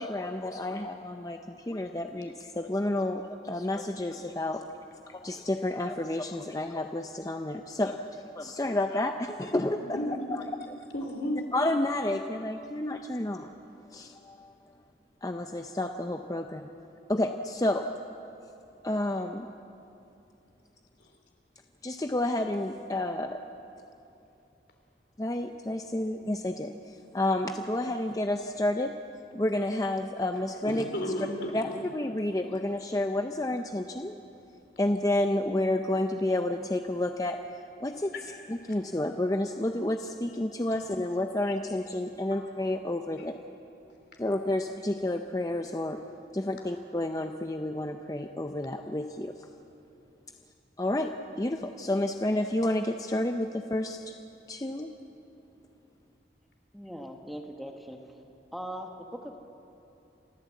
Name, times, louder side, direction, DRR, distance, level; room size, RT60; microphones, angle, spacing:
voice 1, 0.0-4.6 5.1-10.0 10.3-10.8 11.5-13.5 13.9-14.5 15.2-16.7 17.1-17.8 18.8-19.5 21.8-23.4 25.2-28.9 29.3-30.9 31.5-34.2 34.8-37.4 37.8-38.1 38.5-43.4 44.2-46.0 46.3-49.3 50.8-54.1 54.5-54.9, left 1 dB, 20° left, 5 dB, 0.6 m, -30 dB
voice 2, 10.9-11.5 30.6-31.7 38.1-38.3 40.7-40.8 42.3-42.4, left 1 dB, 70° left, 3 dB, 3.4 m, -33 dB
voice 3, 56.7-58.2 58.5-59.4, equal, ahead, 2 dB, 1.2 m, -40 dB
28.5 x 13.5 x 8.3 m, 2.8 s
head